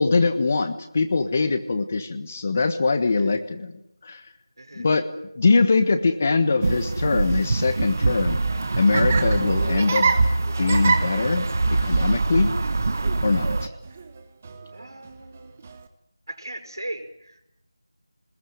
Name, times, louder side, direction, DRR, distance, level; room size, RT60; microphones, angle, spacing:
voice 1, 0.0-4.2 4.8-5.1 5.3-8.4 8.8-10.2 10.6-11.5 11.8-12.5 13.2-13.5, left 3 dB, 30° left, 10 dB, 1.4 m, -22 dB
voice 2, 4.6-4.9 14.7-15.6 16.3-17.5, right 1 dB, 80° right, 8 dB, 5.6 m, -38 dB
sound 1, 6.6-13.7, right 3 dB, 40° right, 1.3 m, -24 dB
Laughter, 8.4-15.9, right 4 dB, 20° right, 1.3 m, -30 dB
26.0 x 21.0 x 9.4 m, 0.79 s
figure-of-eight pair, 175°, 2 cm